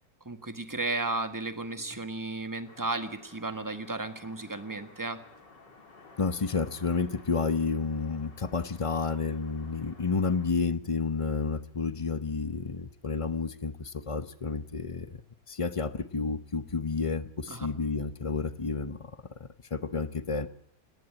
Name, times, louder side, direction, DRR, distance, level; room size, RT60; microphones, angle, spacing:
voice 1, 0.2-5.2 17.5-17.7, right 2 dB, 10° right, 9 dB, 1.3 m, -34 dB
sound 1, 2.6-10.5, left 3 dB, 85° left, 3.4 m, -54 dB
voice 2, 6.2-15.2 15.5-19.1 19.4-20.5, left 4 dB, 45° left, 13 dB, 0.4 m, -30 dB
27.5 x 11.0 x 9.0 m, 0.70 s
omnidirectional pair, 1.9 m